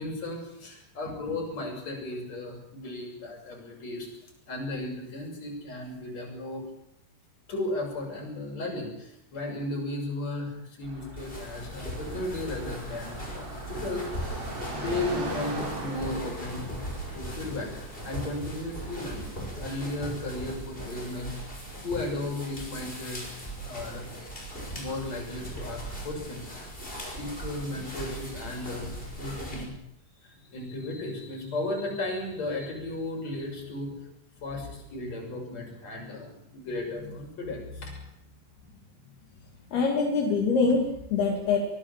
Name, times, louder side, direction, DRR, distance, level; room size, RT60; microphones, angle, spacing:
voice 1, 0.0-4.1 4.5-6.6 7.5-16.6 17.1-17.7 18.0-21.5 21.8-23.2 23.6-24.1 24.7-29.7 30.2-33.9 34.4-38.0, left 2 dB, 40° left, 0 dB, 7.6 m, -35 dB
Car passing by, 10.8-21.9, right 1 dB, 85° right, 8.8 m, -41 dB
sound 1, 11.2-29.6, right 1 dB, 10° left, 5.8 m, -39 dB
voice 2, 39.7-41.6, left 4 dB, 70° left, 0 dB, 4.5 m, -24 dB
24.5 x 19.0 x 7.4 m, 0.76 s
omnidirectional pair, 4.8 m